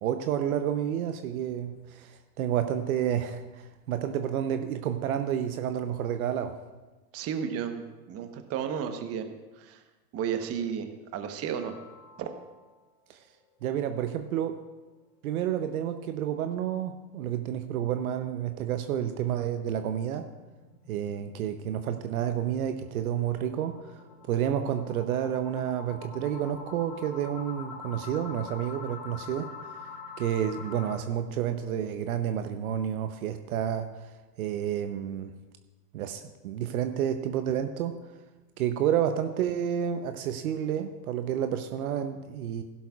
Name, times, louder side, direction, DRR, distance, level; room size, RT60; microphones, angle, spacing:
voice 1, 0.0-6.6 13.1-13.2 13.6-14.6 15.2-20.3 20.9-23.8 24.3-29.5 30.2-34.0 34.4-35.4 35.9-38.0 38.6-42.6, right 10 dB, 60° right, 8 dB, 0.9 m, -30 dB
voice 2, 7.1-9.3 9.6-9.8 10.1-11.8 12.2-12.3, right 8 dB, 30° right, 7 dB, 1.1 m, -33 dB
sound 1, 11.3-12.8 13.2-13.3 13.7-13.8 14.2-14.3 19.2-31.0, left 5 dB, 45° left, 3.0 m, -46 dB
16.5 x 11.5 x 2.4 m, 1.2 s
hypercardioid pair, 105°, 49 cm